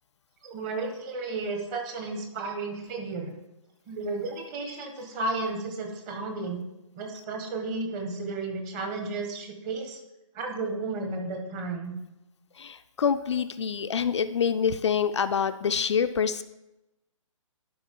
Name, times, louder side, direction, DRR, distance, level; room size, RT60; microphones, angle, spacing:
voice 1, 0.4-3.3 3.9-6.6 6.9-10.0 10.3-12.0, right 3 dB, 25° right, 3 dB, 1.4 m, -33 dB
voice 2, 12.6-16.4, left 7 dB, 60° left, 10 dB, 0.4 m, -26 dB
11.5 x 5.1 x 3.7 m, 0.94 s
figure-of-eight pair, 140°, 17 cm